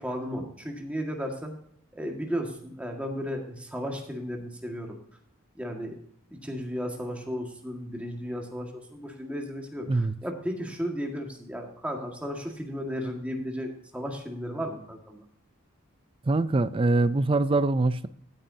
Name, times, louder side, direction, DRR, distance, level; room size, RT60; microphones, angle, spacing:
voice 1, 0.0-1.5 1.9-5.0 5.6-6.0 6.3-15.2, equal, 5° right, 1.7 m, -34 dB
voice 2, 16.3-18.1, right 2 dB, 25° right, 0.4 m, -23 dB
16.0 x 8.9 x 2.8 m
head